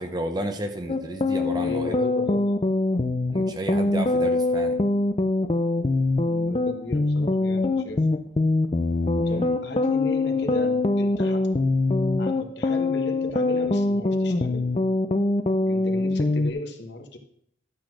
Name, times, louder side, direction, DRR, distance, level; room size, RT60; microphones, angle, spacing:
voice 1, 0.0-2.0 3.3-4.8 9.2-9.6, right 1 dB, 20° right, 6 dB, 0.8 m, -32 dB
sound 1, 0.9-16.5, left 2 dB, 30° left, 0.4 m, -23 dB
voice 2, 1.5-2.7 6.3-8.1 9.3-11.5 12.2-14.7 15.6-17.2, left 2 dB, 60° left, 4 dB, 1.3 m, -36 dB
11.5 x 4.1 x 6.2 m, 0.69 s
head